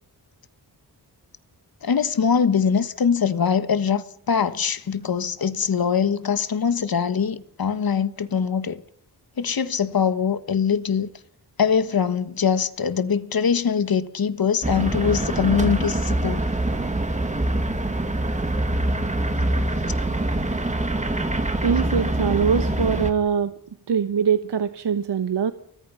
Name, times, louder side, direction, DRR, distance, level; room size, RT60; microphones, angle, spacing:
voice 1, 1.8-8.8 9.4-11.1 11.6-16.4, left 6 dB, 60° left, 1.5 m, -22 dB
sound 1, 14.6-23.1, right 1 dB, 15° right, 2.2 m, -24 dB
voice 2, 21.6-23.5 23.9-25.5, right 7 dB, 85° right, 1.2 m, -22 dB
29.5 x 23.5 x 5.7 m
wide cardioid pair, 170°, 40 cm